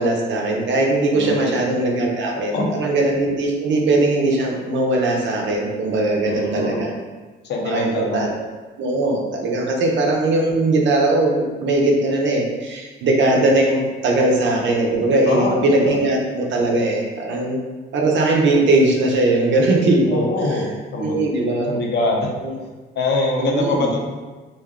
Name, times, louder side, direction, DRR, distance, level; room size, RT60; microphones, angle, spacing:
voice 1, 0.0-6.9 7.6-8.3 8.8-17.6 17.9-20.6 21.0-21.7 22.4-22.5 23.4-23.9, right 2 dB, 70° right, 0 dB, 0.6 m, -19 dB
voice 2, 1.1-1.6 2.5-2.7 6.3-6.8 7.4-8.2 15.3-16.0 20.1-21.2 21.7-22.3 23.0-24.0, left 2 dB, 60° left, 0 dB, 0.6 m, -23 dB
2.5 x 2.3 x 3.5 m, 1.3 s
cardioid pair, 90°, 20 cm